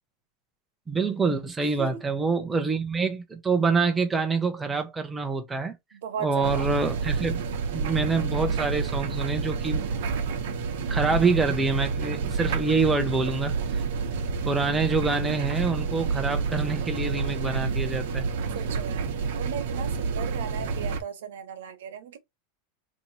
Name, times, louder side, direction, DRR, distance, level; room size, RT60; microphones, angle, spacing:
voice 1, 0.9-5.8 6.2-7.4 7.7-9.9 10.9-13.5 14.5-18.2, right 4 dB, 10° right, 0.5 m, -26 dB
voice 2, 5.9-6.7 18.5-19.1 19.4-22.2, right 8 dB, 85° right, 0.9 m, -36 dB
sound 1, 6.4-21.0, right 5 dB, 60° right, 0.8 m, -29 dB
2.9 x 2.7 x 4.0 m
supercardioid pair, 170°, 0 cm